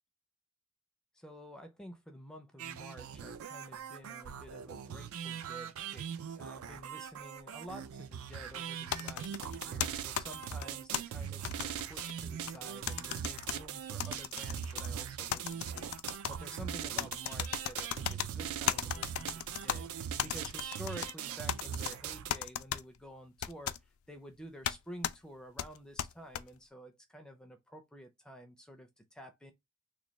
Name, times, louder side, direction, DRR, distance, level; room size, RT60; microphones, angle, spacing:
voice 1, 1.1-15.9 16.3-23.7 24.1-29.5, equal, 5° left, 0.4 m, -50 dB
sound 1, 2.6-22.3, right 8 dB, 80° right, 0.4 m, -41 dB
sound 2, 8.9-11.0 11.4-12.6 12.9-13.6 14.0-14.9 15.3-16.3 17.0-18.3 18.7-19.8 20.2-21.1 21.5-21.9 22.3-22.8 23.4-23.8 24.6-24.8 25.0-25.1 25.6-26.4, left 10 dB, 80° left, 0.3 m, -36 dB
3.0 x 2.2 x 3.9 m
head